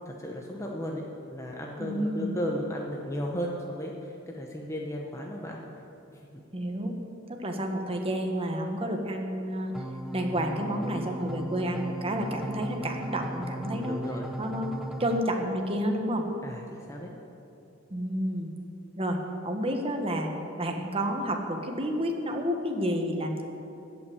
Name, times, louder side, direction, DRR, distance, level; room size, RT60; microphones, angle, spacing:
voice 1, 0.1-5.6 6.3-6.4 13.6-14.3 16.4-17.1, equal, 15° left, -1 dB, 0.9 m, -35 dB
voice 2, 1.8-2.3 6.5-6.9 7.3-9.7 10.1-14.0 14.4-14.7 15.0-16.3 17.9-18.5 19.0-19.2 19.4-20.3 20.6-23.4, equal, 30° right, 3 dB, 1.3 m, -30 dB
sound 1, 9.7-15.2, equal, 5° right, 0.4 m, -37 dB
14.0 x 5.9 x 9.7 m, 2.9 s
head